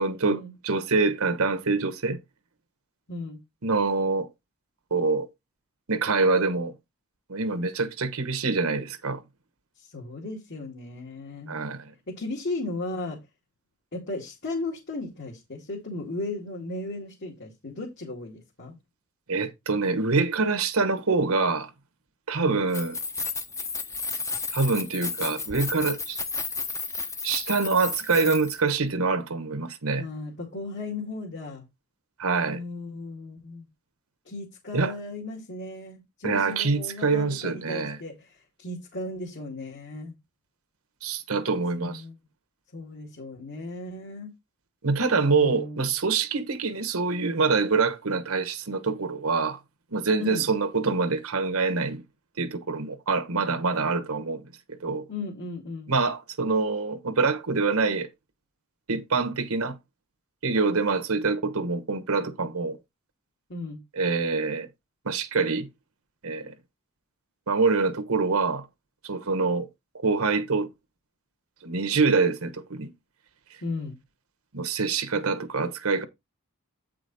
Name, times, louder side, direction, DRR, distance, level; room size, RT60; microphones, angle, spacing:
voice 1, 0.0-2.2 3.6-4.3 4.9-5.3 5.9-6.7 7.3-9.2 11.5-11.9 19.3-21.7 22.3-23.0 24.5-26.2 27.2-30.0 32.2-32.6 34.7-34.9 36.2-38.0 41.0-42.0 44.8-49.6 49.9-52.0 52.4-54.4 54.8-55.0 55.9-58.1 58.9-59.7 60.4-62.8 64.0-64.7 65.0-65.7 66.2-66.5 67.5-68.7 69.0-69.7 70.0-70.7 71.6-72.9 74.5-76.0, right 4 dB, 70° right, 1.2 m, -25 dB
voice 2, 3.1-3.4 9.8-11.6 12.1-13.2 13.9-18.8 22.4-22.6 30.0-31.6 32.5-33.7 34.3-40.1 41.7-42.2 42.7-44.3 45.3-45.9 50.2-50.5 55.1-55.9 63.5-63.8 73.6-74.0, left 2 dB, 55° left, 2.2 m, -36 dB
Keys jangling, 22.6-28.8, left 4 dB, 15° left, 0.8 m, -33 dB
8.6 x 5.0 x 4.1 m
head